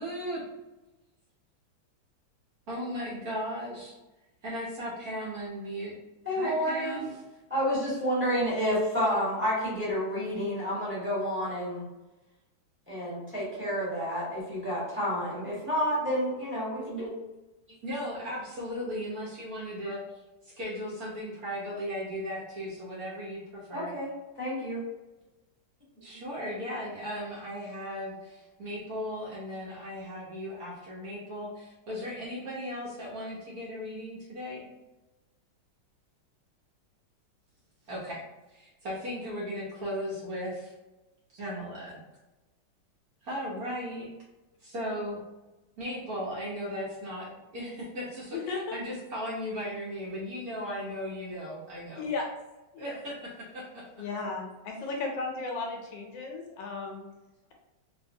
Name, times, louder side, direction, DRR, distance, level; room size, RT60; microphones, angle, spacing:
voice 1, 0.0-0.4 2.7-3.9 4.4-6.0 6.3-7.1 17.8-20.0 20.4-23.9 26.0-34.7 37.9-38.2 38.5-40.7 41.3-42.0 43.2-44.1 44.6-45.2 45.8-52.0 52.8-53.9, equal, 60° right, -6 dB, 1.1 m, -37 dB
voice 2, 6.2-7.0 7.5-11.8 12.9-17.1 23.7-24.1 24.4-24.8, equal, 10° right, -9 dB, 1.0 m, -29 dB
voice 3, 48.3-48.8 52.0-52.3 52.7-52.9 54.0-57.0, left 4 dB, 75° left, 1 dB, 1.3 m, -35 dB
3.1 x 2.8 x 2.6 m, 1.1 s
omnidirectional pair, 2.1 m